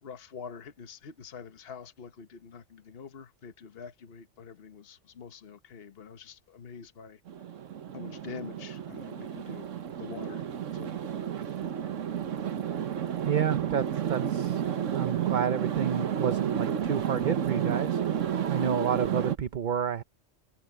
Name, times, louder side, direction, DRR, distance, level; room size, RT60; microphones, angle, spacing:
voice 1, 0.0-7.2 7.9-9.7 10.0-10.4 10.7-10.9 11.4-11.6, left 6 dB, 50° left, 1.3 m, -45 dB
sound 1, 7.3-19.4, right 9 dB, 80° right, 1.4 m, -31 dB
voice 2, 13.2-14.6 14.9-18.2 18.5-20.0, right 8 dB, 45° right, 0.8 m, -30 dB
omnidirectional pair, 1.3 m